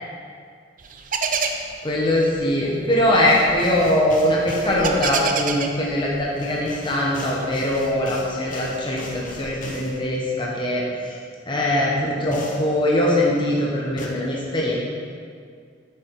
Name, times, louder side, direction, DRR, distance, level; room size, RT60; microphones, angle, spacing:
sound 1, 0.8-6.8 7.3-10.0, right 5 dB, 45° right, 0.6 m, -30 dB
voice 1, 1.8-11.2 11.5-14.7, left 1 dB, 25° left, -4 dB, 1.2 m, -22 dB
sound 2, 3.2-4.8 6.4-10.0 12.3-12.7 14.0-14.1, left 2 dB, 45° left, 1.1 m, -38 dB
8.2 x 7.3 x 4.7 m, 2.1 s
head